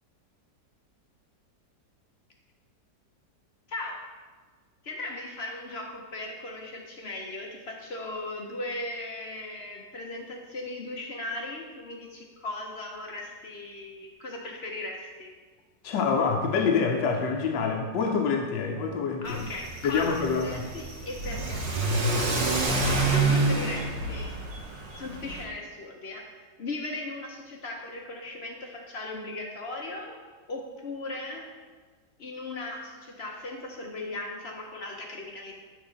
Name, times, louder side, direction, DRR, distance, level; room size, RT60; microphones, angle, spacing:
voice 1, 3.7-4.0 4.8-15.3 19.2-21.6 23.1-24.3 25.0-30.2 30.5-31.5 32.2-35.5, left 2 dB, 50° left, 0 dB, 0.8 m, -37 dB
voice 2, 15.8-19.5 19.8-20.6, left 5 dB, 90° left, 2 dB, 1.4 m, -26 dB
Car / Accelerating revving vroom, 19.3-25.4, right 2 dB, 80° right, 2.0 m, -28 dB
9.0 x 4.0 x 5.0 m, 1.4 s
omnidirectional pair, 1.9 m